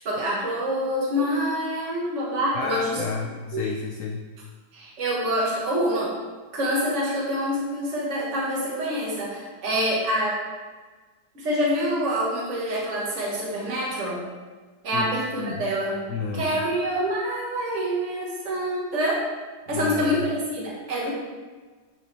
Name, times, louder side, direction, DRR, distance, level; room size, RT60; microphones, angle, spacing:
voice 1, 0.1-3.0 3.5-3.6 4.7-6.2 6.5-10.4 11.4-14.2 14.8-15.9 16.3-19.2 19.7-21.1, equal, 45° right, -4 dB, 1.8 m, -26 dB
voice 2, 2.5-4.3 14.9-15.1 15.4-15.7 16.1-16.6 19.7-20.2, left 5 dB, 65° left, 2 dB, 0.8 m, -31 dB
8.9 x 5.1 x 3.4 m, 1.4 s
omnidirectional pair, 1.8 m